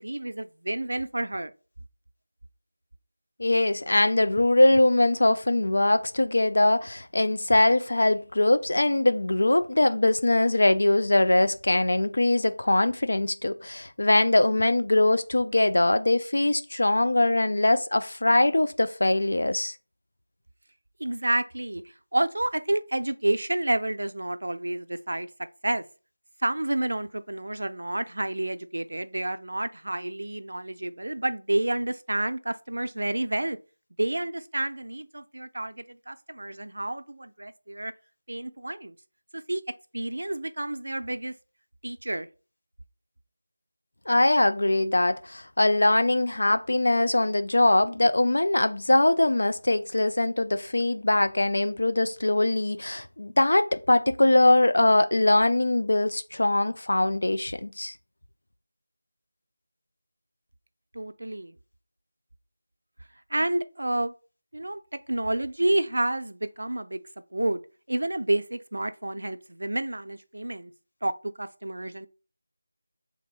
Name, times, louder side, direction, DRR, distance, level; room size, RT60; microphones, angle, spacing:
voice 1, 0.0-1.5 21.0-25.3 25.6-25.8 26.4-33.6 34.0-37.9 38.3-39.0 39.3-39.6 39.9-41.3 41.8-42.3 60.9-61.5 63.3-64.1 64.5-67.0 67.3-67.6 67.9-70.7 71.0-72.1, right 1 dB, 75° right, 0.4 m, -29 dB
voice 2, 3.4-19.7 44.1-57.9, left 2 dB, 70° left, 0.4 m, -22 dB
3.4 x 2.7 x 4.1 m
figure-of-eight pair, 175°, 0 cm